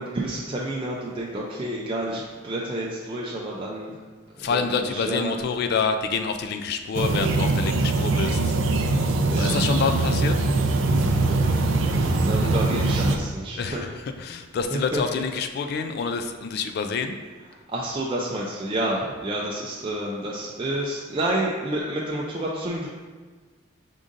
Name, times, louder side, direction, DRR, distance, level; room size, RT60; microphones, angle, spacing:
voice 1, 0.0-3.9 4.4-5.4 9.3-9.6 10.0-10.1 11.5-11.6 12.0-13.8 14.7-15.2 17.7-22.9, right 1 dB, 25° right, -4 dB, 0.4 m, -29 dB
voice 2, 4.4-8.5 9.4-10.4 13.6-13.8 14.2-17.2, left 5 dB, 55° left, 7 dB, 0.3 m, -27 dB
sound 1, 6.9-13.2, right 2 dB, 90° right, 0.4 m, -22 dB
5.1 x 3.7 x 2.5 m, 1.4 s
head